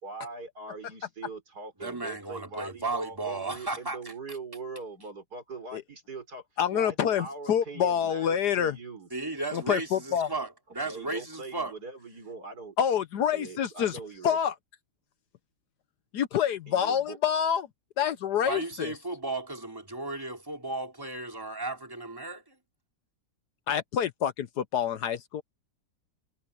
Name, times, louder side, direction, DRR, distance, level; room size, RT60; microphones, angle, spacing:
voice 1, 0.0-6.5 6.7-9.1 10.8-12.8 13.3-14.4 16.7-17.2, right 4 dB, 55° right, 4.9 m, -42 dB
voice 2, 1.8-4.1 9.1-11.7 18.4-22.5, right 2 dB, 10° right, 3.3 m, -34 dB
voice 3, 6.6-8.8 9.5-10.3 12.8-14.5 16.1-17.7 18.0-18.9 23.7-25.4, left 9 dB, 65° left, 1.3 m, -27 dB
omnidirectional pair, 2.0 m